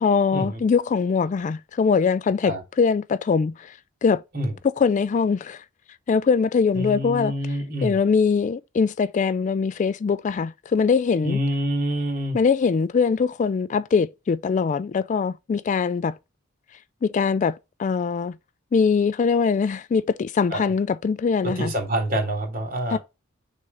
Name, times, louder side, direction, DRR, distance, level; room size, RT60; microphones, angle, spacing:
voice 1, 0.0-4.2 4.8-5.6 6.1-7.3 7.8-11.4 12.3-16.1 17.0-18.4 18.7-21.7 22.9-23.0, left 5 dB, 40° left, 0.3 m, -22 dB
voice 2, 6.7-7.9 11.2-12.4 20.5-20.7 21.4-23.0, right 1 dB, 45° right, 3.4 m, -26 dB
6.4 x 3.7 x 5.6 m
head